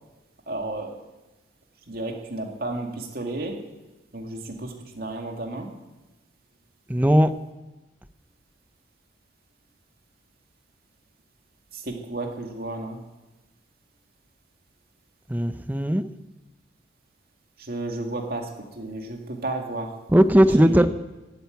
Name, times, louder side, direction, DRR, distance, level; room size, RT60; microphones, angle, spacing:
voice 1, 0.5-1.0 1.9-3.6 4.1-5.7 11.7-13.0 17.6-20.0 20.6-20.9, right 2 dB, 55° right, 2 dB, 2.2 m, -32 dB
voice 2, 6.9-7.3 15.3-16.1 20.1-20.9, equal, 10° right, 11 dB, 0.6 m, -18 dB
15.5 x 9.2 x 9.3 m, 1.1 s
head